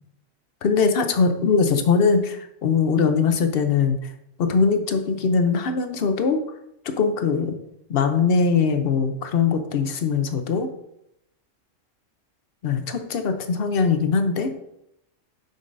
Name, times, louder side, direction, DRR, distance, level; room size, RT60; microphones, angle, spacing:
voice 1, 0.6-4.1 4.4-6.4 6.8-7.5 7.9-10.7 12.6-14.5, left 5 dB, 55° left, 7 dB, 0.8 m, -21 dB
7.1 x 5.4 x 2.6 m, 0.80 s
omnidirectional pair, 1.3 m